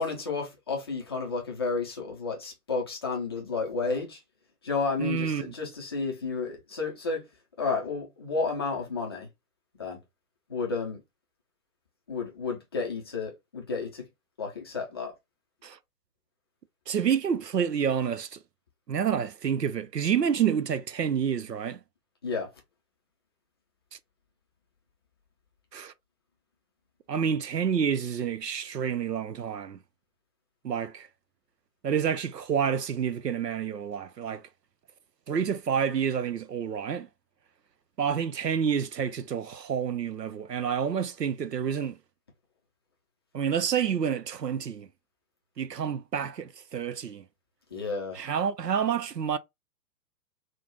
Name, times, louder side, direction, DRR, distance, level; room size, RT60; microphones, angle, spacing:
voice 1, 0.0-4.2 4.6-7.2 7.6-9.3 9.8-10.0 10.5-11.0 12.1-14.1 14.4-15.1 22.2-22.5 47.7-48.2, left 4 dB, 20° left, 0.4 m, -31 dB
voice 2, 5.0-5.5 15.6-15.8 16.9-18.4 18.9-21.8 25.7-25.9 27.1-29.8 30.6-31.1 31.8-34.4 35.3-37.1 38.0-42.0 43.3-44.9 45.6-47.2 48.1-49.4, right 7 dB, 90° right, 0.6 m, -28 dB
3.4 x 2.0 x 2.9 m
figure-of-eight pair, 115°, 48 cm